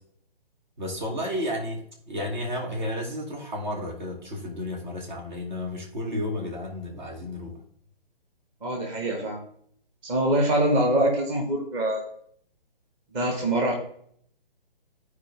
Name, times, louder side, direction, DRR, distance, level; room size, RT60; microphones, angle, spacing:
voice 1, 0.8-7.6, left 1 dB, 50° right, 0 dB, 3.2 m, -32 dB
voice 2, 8.6-9.4 10.0-12.1 13.1-13.7, right 1 dB, 20° right, 0 dB, 1.7 m, -24 dB
12.5 x 4.9 x 3.5 m, 0.63 s
figure-of-eight pair, 135°, 29 cm